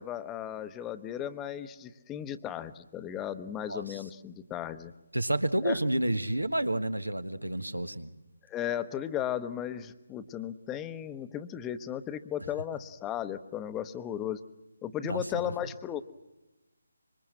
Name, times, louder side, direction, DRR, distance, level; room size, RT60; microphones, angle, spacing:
voice 1, 0.0-4.9 5.6-5.8 8.5-14.4 14.8-16.0, left 10 dB, 15° left, 12 dB, 0.9 m, -35 dB
voice 2, 3.7-4.0 5.1-8.1 15.0-15.4, right 1 dB, 90° right, 10 dB, 1.6 m, -30 dB
26.0 x 24.0 x 7.7 m, 1.0 s
figure-of-eight pair, 150°, 0 cm